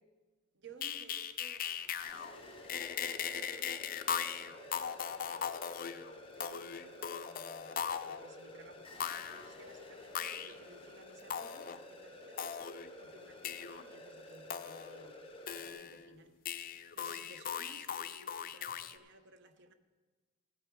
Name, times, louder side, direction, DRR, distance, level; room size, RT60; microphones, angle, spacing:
voice 1, 0.5-19.7, right 3 dB, 65° right, 1.0 m, -58 dB
sound 1, 0.8-2.4 2.6-8.3 9.0-9.5 10.2-10.5 11.3-11.8 12.4-12.9 13.4-13.8 14.5-15.1 15.5-16.2 16.5-19.0, left 8 dB, 45° left, 0.5 m, -39 dB
sound 2, 2.0-15.7, left 2 dB, 25° left, 1.3 m, -52 dB
15.5 x 8.9 x 4.8 m
head